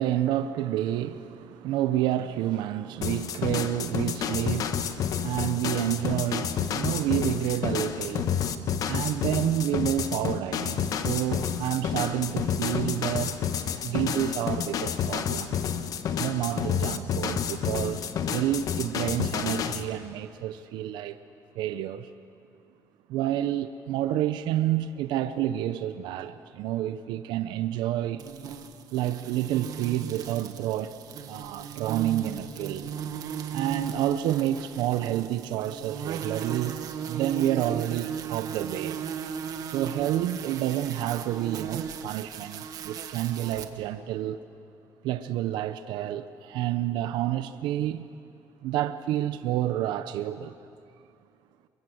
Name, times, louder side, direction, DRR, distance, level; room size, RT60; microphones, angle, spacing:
voice 1, 0.0-13.4 13.8-15.6 16.2-21.2 21.5-22.1 23.1-28.2 28.9-30.9 31.3-32.9 33.5-36.8 37.1-39.0 39.7-44.4 45.0-48.0 48.6-50.6, right 12 dB, 80° right, 0.8 m, -29 dB
sound 1, 3.0-19.8, left 8 dB, 50° left, 1.4 m, -30 dB
sound 2, 28.2-43.6, right 7 dB, 55° right, 1.7 m, -37 dB
28.5 x 23.0 x 7.9 m
cardioid pair, 140°, 8 cm